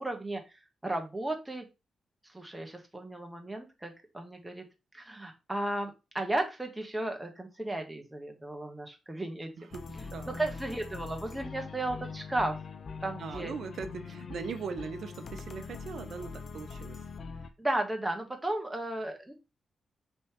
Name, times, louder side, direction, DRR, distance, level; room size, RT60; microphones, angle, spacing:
voice 1, 0.0-1.6 2.2-4.6 4.9-9.5 10.0-12.6 13.0-13.5 17.6-19.3, right 1 dB, 10° right, 1.1 m, -35 dB
sound 1, 9.7-17.5, left 5 dB, 45° left, 0.5 m, -42 dB
voice 2, 13.2-17.0, right 5 dB, 65° right, 0.7 m, -40 dB
5.3 x 3.3 x 2.9 m
wide cardioid pair, 125°, 0 cm